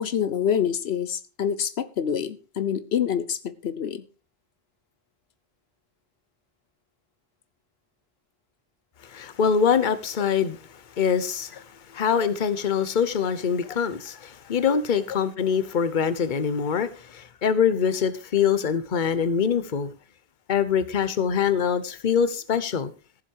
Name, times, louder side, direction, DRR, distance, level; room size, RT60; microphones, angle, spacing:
voice 1, 0.0-4.0, left 8 dB, 90° left, 1.1 m, -26 dB
voice 2, 9.0-19.9 20.5-22.9, left 7 dB, 50° left, 1.0 m, -24 dB
14.5 x 7.6 x 4.7 m
omnidirectional pair, 1.0 m